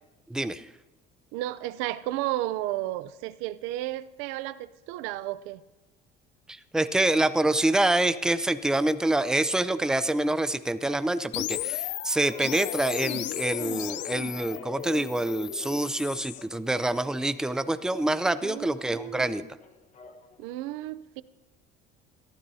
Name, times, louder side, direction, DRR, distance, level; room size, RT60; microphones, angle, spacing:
voice 1, 0.3-0.7 6.5-19.4, right 2 dB, 5° right, 0.5 m, -26 dB
voice 2, 1.3-5.6 18.4-19.4 20.4-21.2, right 15 dB, 90° right, 0.6 m, -33 dB
sound 1, 11.3-16.4, left 14 dB, 65° left, 0.6 m, -34 dB
sound 2, 12.2-20.5, left 5 dB, 35° left, 1.3 m, -48 dB
22.0 x 14.5 x 2.8 m
cardioid pair, 125°, 20 cm